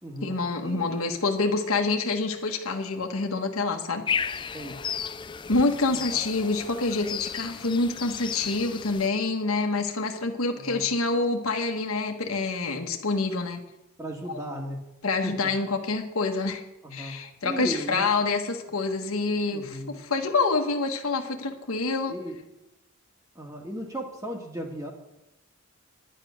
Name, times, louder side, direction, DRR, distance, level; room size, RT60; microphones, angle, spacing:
voice 1, 0.2-4.5 5.5-13.6 14.3-14.4 15.0-16.6 16.9-22.1, left 3 dB, 85° left, 4 dB, 1.3 m, -27 dB
sound 1, 4.1-9.1, left 7 dB, 20° left, 0.3 m, -34 dB
voice 2, 5.9-6.2 10.5-10.9 14.0-14.8 15.2-15.5 16.8-17.2 17.4-18.1 19.5-20.0 22.1-22.4 23.4-24.9, right 1 dB, 15° right, 1 dB, 1.7 m, -36 dB
10.5 x 10.0 x 6.3 m, 0.90 s
head